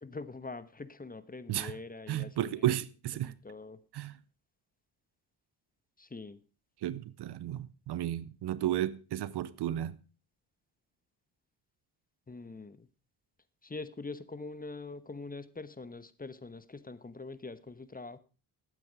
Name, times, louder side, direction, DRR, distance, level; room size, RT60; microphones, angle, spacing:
voice 1, 0.0-2.7 3.2-3.8 6.0-6.4 12.3-12.9 13.6-18.2, left 3 dB, 20° left, 1.0 m, -44 dB
voice 2, 2.1-3.3 3.9-4.2 6.8-10.0, right 12 dB, 65° right, 0.7 m, -33 dB
12.0 x 9.4 x 4.7 m
supercardioid pair, 60°, 44 cm